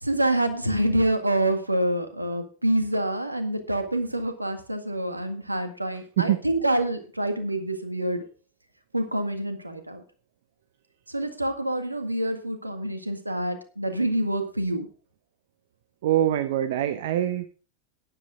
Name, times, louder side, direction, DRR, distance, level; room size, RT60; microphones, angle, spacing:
voice 1, 0.0-8.2 8.9-10.0 11.1-14.9, right 1 dB, 85° right, 8 dB, 1.9 m, -26 dB
voice 2, 16.0-17.5, right 12 dB, 55° right, 12 dB, 0.9 m, -24 dB
12.5 x 10.5 x 3.8 m, 0.38 s
figure-of-eight pair, 90°, 0 cm